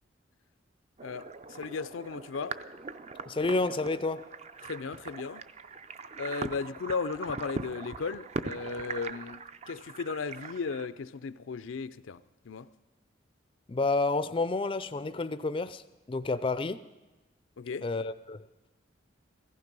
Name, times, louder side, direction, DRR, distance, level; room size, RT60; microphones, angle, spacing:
voice 1, 1.0-2.6 4.6-5.5 6.2-12.7 17.6-17.9, left 5 dB, 85° left, 0.5 m, -36 dB
sound 1, 1.0-10.9, right 4 dB, 35° right, 0.5 m, -41 dB
voice 2, 3.3-4.2 13.7-15.8 16.1-16.8 17.8-18.5, left 3 dB, 25° left, 0.4 m, -29 dB
15.5 x 15.0 x 5.3 m
head